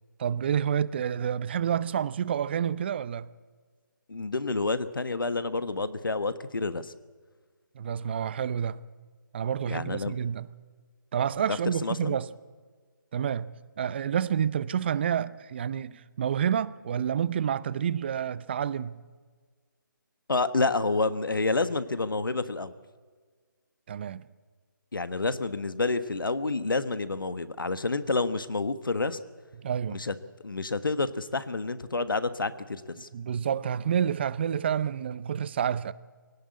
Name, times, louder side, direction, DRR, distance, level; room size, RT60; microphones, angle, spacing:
voice 1, 0.2-3.3 7.7-8.8 9.3-10.5 11.1-12.3 13.1-13.5 13.8-19.0 23.9-24.2 29.6-30.0 33.1-35.9, right 8 dB, 30° right, 0.6 m, -29 dB
voice 2, 4.1-6.9 9.7-10.1 11.5-12.2 20.3-22.7 24.9-29.2 29.9-30.1 30.4-33.1, left 3 dB, 75° left, 1.4 m, -29 dB
21.5 x 17.5 x 8.4 m
figure-of-eight pair, 155°, 11 cm